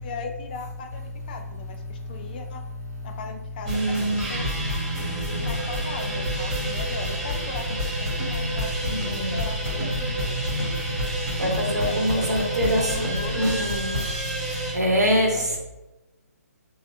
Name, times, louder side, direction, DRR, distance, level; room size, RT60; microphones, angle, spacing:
voice 1, 0.0-2.6 3.0-4.5 5.2-8.7 9.1-10.4 11.5-13.7 14.9-15.6, left 4 dB, 35° left, 4 dB, 0.3 m, -38 dB
sound 1, 3.7-14.7, right 1 dB, 25° right, 0.8 m, -28 dB
voice 2, 8.9-9.3 11.4-14.0 14.7-15.3, equal, 85° right, -1 dB, 0.9 m, -24 dB
3.3 x 2.0 x 2.7 m, 1.0 s
figure-of-eight pair, 145°, 9 cm